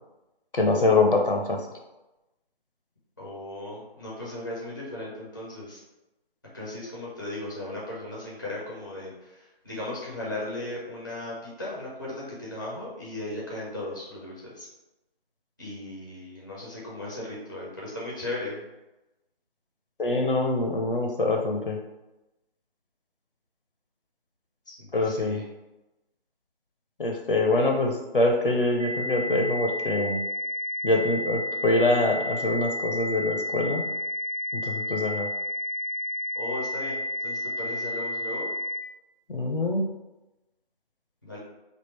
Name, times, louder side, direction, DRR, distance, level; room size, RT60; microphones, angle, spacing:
voice 1, 0.5-1.6 20.0-21.8 24.9-25.4 27.0-30.2 30.8-33.8 34.5-35.3 39.3-39.9, left 2 dB, 60° left, 2 dB, 0.7 m, -24 dB
voice 2, 3.2-5.8 6.5-14.7 15.6-18.6 24.7-25.4 36.3-38.5 41.2-41.4, left 1 dB, 20° left, -6 dB, 0.6 m, -37 dB
sound 1, 28.8-38.8, left 1 dB, 40° right, 0.4 m, -31 dB
3.5 x 2.4 x 4.5 m, 0.99 s
figure-of-eight pair, 165°, 30 cm